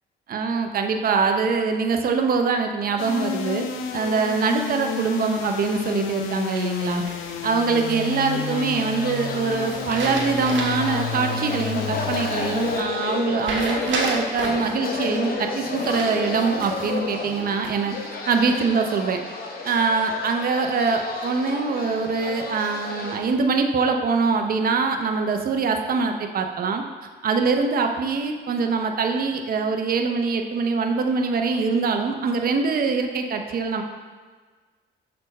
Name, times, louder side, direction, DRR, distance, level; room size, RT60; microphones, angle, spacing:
voice 1, 0.3-3.6 3.9-7.0 7.4-17.9 18.3-19.2 19.6-26.8 27.2-33.8, right 4 dB, 50° right, 4 dB, 0.6 m, -23 dB
sound 1, 3.0-12.8, left 6 dB, 90° left, 0.5 m, -31 dB
sound 2, 6.6-7.5 9.7-10.9 11.3-11.4 13.4-14.7 15.8-16.9 17.4-18.0, right 3 dB, 70° right, 1.2 m, -31 dB
sound 3, 7.4-23.2, left 3 dB, 50° left, 1.1 m, -32 dB
6.5 x 4.3 x 4.1 m, 1.4 s
cardioid pair, 90°, 20 cm